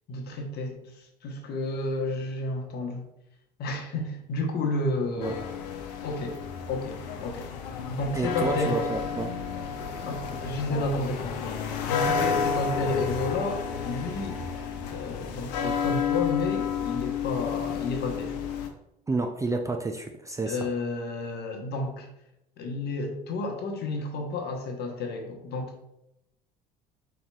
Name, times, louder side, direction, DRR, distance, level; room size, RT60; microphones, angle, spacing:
voice 1, 0.1-3.1 3.6-5.6 6.0-6.4 6.7-7.5 7.9-8.8 10.0-11.5 11.9-14.4 14.8-18.4 20.4-22.1 22.6-25.8, left 2 dB, 50° left, 3 dB, 1.0 m, -31 dB
sound 1, 5.2-18.7, left 6 dB, 70° left, 0.6 m, -31 dB
voice 2, 8.2-9.3 19.1-20.7, right 3 dB, 15° right, 5 dB, 0.4 m, -30 dB
4.8 x 4.1 x 2.3 m, 0.82 s
hypercardioid pair, 60°, 21 cm